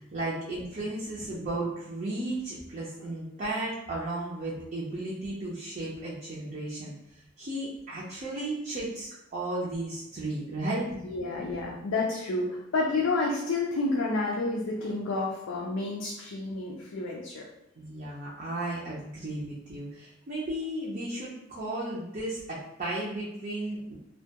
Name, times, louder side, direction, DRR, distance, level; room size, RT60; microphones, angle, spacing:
voice 1, 0.0-6.9 7.4-10.9 17.8-23.9, right 1 dB, 40° right, -7 dB, 0.5 m, -34 dB
voice 2, 11.0-17.4, left 3 dB, 85° left, -3 dB, 0.4 m, -30 dB
2.2 x 2.1 x 2.8 m, 0.84 s
head